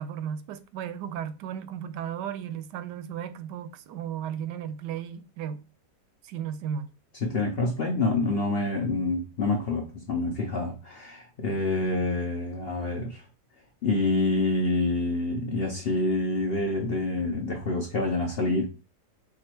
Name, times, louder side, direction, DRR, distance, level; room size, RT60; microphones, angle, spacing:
voice 1, 0.0-5.6 6.2-6.9, right 9 dB, 90° right, 1.2 m, -35 dB
voice 2, 7.2-13.2 13.8-18.6, left 2 dB, 55° left, 0.6 m, -27 dB
4.6 x 2.4 x 4.4 m
omnidirectional pair, 1.8 m